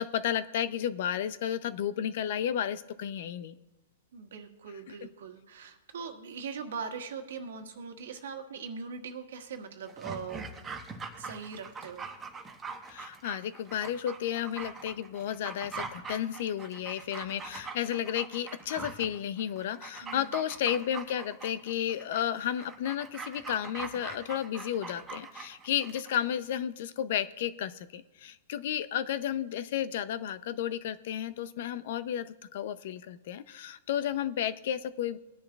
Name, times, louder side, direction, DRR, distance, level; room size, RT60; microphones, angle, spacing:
voice 1, 0.0-3.5 4.9-5.0 12.9-35.2, left 10 dB, 60° left, 14 dB, 0.6 m, -32 dB
voice 2, 4.1-10.5 11.2-12.0 20.0-20.3, right 5 dB, 75° right, 4 dB, 1.6 m, -41 dB
Dog, 9.9-26.1 26.4-26.5, right 4 dB, 15° right, 1.1 m, -43 dB
20.5 x 10.0 x 2.4 m, 1.1 s
hypercardioid pair, 145°, 0 cm